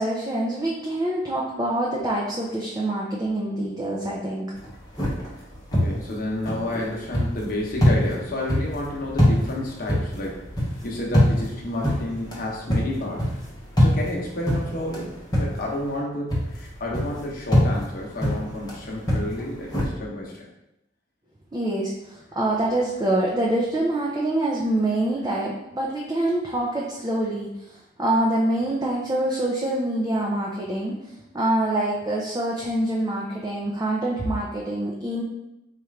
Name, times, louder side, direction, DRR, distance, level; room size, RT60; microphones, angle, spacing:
voice 1, 0.0-4.5 21.5-27.6 28.0-31.0 31.3-35.2, right 1 dB, 20° right, -3 dB, 0.4 m, -25 dB
sound 1, 4.6-16.0 16.3-19.9, equal, 20° left, 0.9 m, -25 dB
voice 2, 5.7-10.4 10.8-13.3 13.8-20.5, left 1 dB, 50° left, -2 dB, 0.9 m, -30 dB
4.4 x 2.4 x 3.2 m, 0.89 s
head